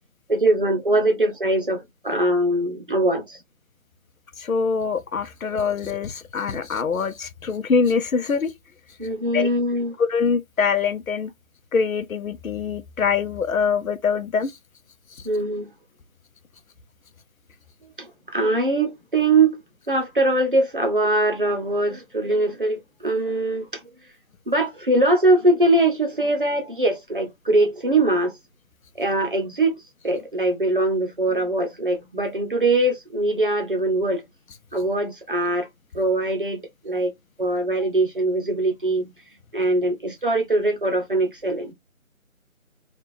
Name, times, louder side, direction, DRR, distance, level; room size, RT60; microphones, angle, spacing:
voice 1, 0.3-3.4 9.0-9.9 15.2-15.7 18.0-19.6 19.9-23.8 24.5-28.4 28.9-29.8 30.0-34.2 34.7-35.7 35.9-37.1 37.4-39.1 39.5-41.7, right 2 dB, 40° right, 0.7 m, -22 dB
voice 2, 4.4-8.5 9.3-9.5 10.0-11.3 11.7-14.5, left 5 dB, 80° left, 0.7 m, -24 dB
3.2 x 2.4 x 3.3 m
figure-of-eight pair, 170°, 41 cm